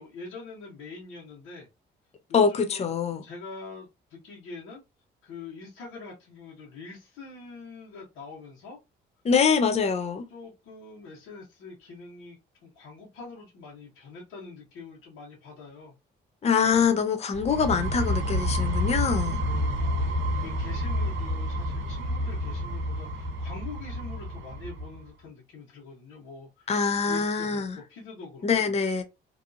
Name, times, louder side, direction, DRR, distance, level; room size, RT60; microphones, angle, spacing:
voice 1, 0.0-1.7 2.3-2.9 3.2-4.8 5.2-8.8 10.3-15.9 19.4-26.7 27.0-28.4, left 4 dB, 85° left, 1.1 m, -44 dB
voice 2, 2.3-3.2 9.2-10.2 16.4-19.4 26.7-27.8 28.4-29.0, left 6 dB, 35° left, 0.5 m, -24 dB
sound 1, 17.3-25.0, equal, 75° right, 0.7 m, -29 dB
2.7 x 2.4 x 2.6 m
cardioid pair, 90°, 20 cm